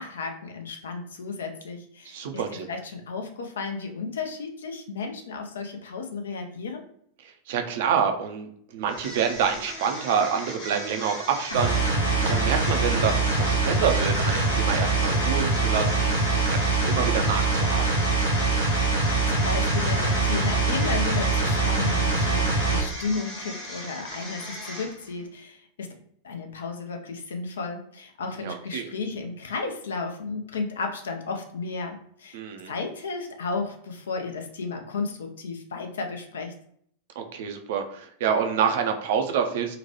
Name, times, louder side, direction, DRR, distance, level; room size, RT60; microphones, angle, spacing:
voice 1, 0.0-2.4 2.7-6.8 19.3-25.9 26.2-32.4 32.7-36.5, left 4 dB, 65° left, 4 dB, 0.5 m, -33 dB
voice 2, 2.0-2.7 7.2-17.8 28.4-28.9 32.3-32.7 37.2-39.8, right 7 dB, 55° right, 5 dB, 0.5 m, -27 dB
sound 1, 8.9-25.2, equal, 45° left, 1.4 m, -38 dB
sound 2, 11.5-22.8, right 3 dB, 90° left, 0.9 m, -23 dB
3.8 x 2.2 x 2.9 m, 0.65 s
figure-of-eight pair, 90°, 0 cm